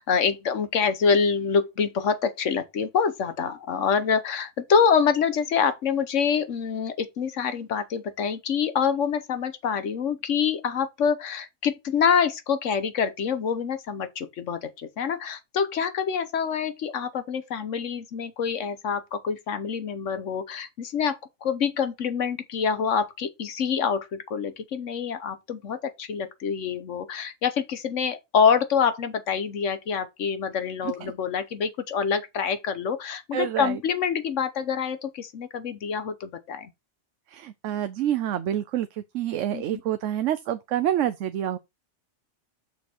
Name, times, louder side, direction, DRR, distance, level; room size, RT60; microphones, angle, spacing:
voice 1, 0.0-36.7 39.5-39.6, left 6 dB, 80° left, 1.3 m, -26 dB
voice 2, 33.3-33.8 37.3-41.6, right 11 dB, 85° right, 1.0 m, -27 dB
6.6 x 5.1 x 4.3 m
omnidirectional pair, 1.2 m